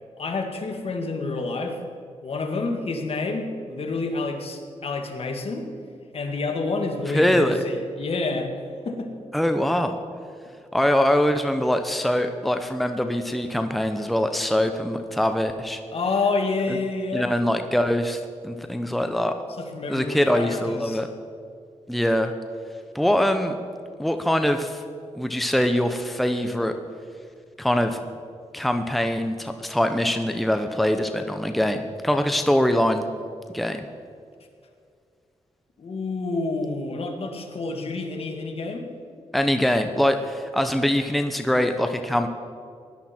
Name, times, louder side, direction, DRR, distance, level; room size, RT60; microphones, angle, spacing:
voice 1, 0.2-1.8 2.2-5.6 6.1-8.5 8.9-9.1 15.9-17.3 19.6-21.0 35.8-38.9, left 3 dB, 55° left, 3 dB, 2.0 m, -28 dB
voice 2, 7.1-7.6 9.3-10.0 10.7-15.8 16.7-16.8 17.1-19.4 19.9-21.1 21.9-22.3 22.9-23.6 24.0-24.8 25.1-26.7 27.6-28.0 28.5-33.0 33.5-33.9 39.3-42.3, left 1 dB, ahead, 7 dB, 0.8 m, -23 dB
17.0 x 11.5 x 4.4 m, 2.3 s
cardioid pair, 75°, 12 cm